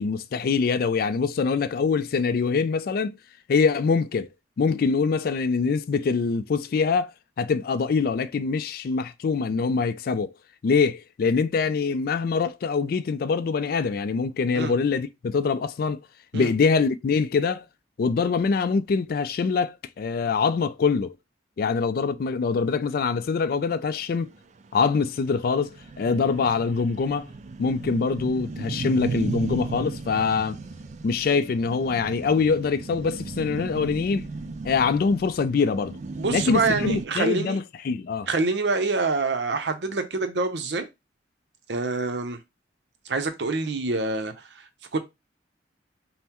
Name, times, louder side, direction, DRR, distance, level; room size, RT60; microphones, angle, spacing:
voice 1, 0.0-3.2 3.5-4.3 4.6-7.1 7.4-10.3 10.6-16.0 16.3-17.6 18.0-21.1 21.6-24.3 24.7-27.3 27.6-30.6 31.0-34.2 34.6-36.0 36.3-38.3, left 5 dB, 55° left, 0.3 m, -24 dB
sound 1, 24.3-24.4 24.8-24.9 25.2-25.3 25.5-37.1, right 3 dB, 40° right, 0.4 m, -35 dB
voice 2, 36.2-37.6 38.3-40.9 41.7-42.4 43.1-44.3 44.9-45.0, right 3 dB, 70° right, 0.7 m, -26 dB
5.4 x 2.1 x 2.9 m
head